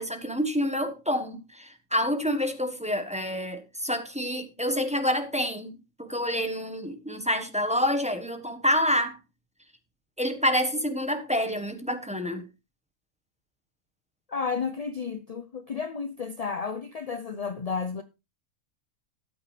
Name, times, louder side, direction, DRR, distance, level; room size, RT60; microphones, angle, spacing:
voice 1, 0.0-9.2 10.2-12.4, equal, 5° right, 1.1 m, -28 dB
voice 2, 14.3-18.0, left 5 dB, 50° left, 0.4 m, -32 dB
13.5 x 8.8 x 3.3 m
omnidirectional pair, 1.5 m